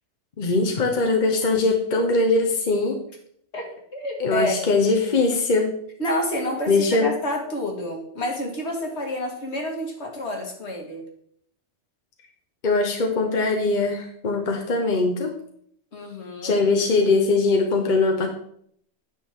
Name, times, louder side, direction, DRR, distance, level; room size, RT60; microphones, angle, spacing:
voice 1, 0.4-3.0 4.2-5.7 6.7-7.1 12.6-15.3 16.4-18.3, left 3 dB, 45° left, 2 dB, 1.0 m, -21 dB
voice 2, 3.5-4.6 6.0-11.0 15.9-16.6, equal, 65° left, 1 dB, 2.0 m, -29 dB
9.4 x 6.2 x 3.6 m, 0.68 s
omnidirectional pair, 1.2 m